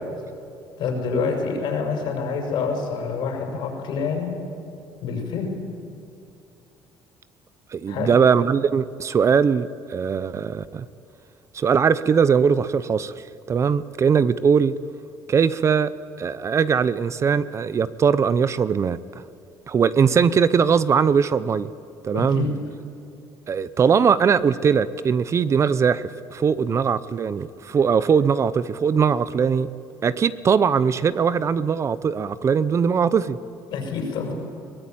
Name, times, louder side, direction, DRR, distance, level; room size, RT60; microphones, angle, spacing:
voice 1, 0.8-4.3 5.0-5.6 7.9-8.2 22.1-22.5 33.7-34.3, left 5 dB, 70° left, 2 dB, 6.2 m, -27 dB
voice 2, 7.7-10.9 11.5-14.7 15.3-15.9 16.2-19.0 19.7-21.7 22.0-22.5 23.5-29.7 30.0-33.4, right 6 dB, 35° right, 16 dB, 0.7 m, -20 dB
22.5 x 18.5 x 9.2 m, 2.6 s
cardioid pair, 110°, 8 cm